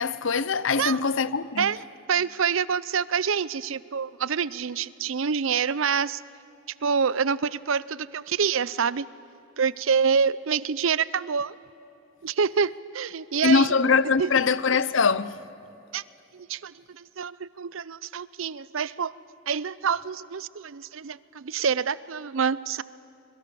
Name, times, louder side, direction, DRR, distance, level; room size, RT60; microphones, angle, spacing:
voice 1, 0.0-1.7 13.4-15.3, left 5 dB, 65° left, 0.7 m, -22 dB
voice 2, 1.6-6.2 6.8-9.0 9.6-11.6 12.2-13.8 14.2-14.3 15.9-16.0 16.3-19.1 19.5-22.8, right 6 dB, 70° right, 0.6 m, -27 dB
25.0 x 22.5 x 6.9 m
head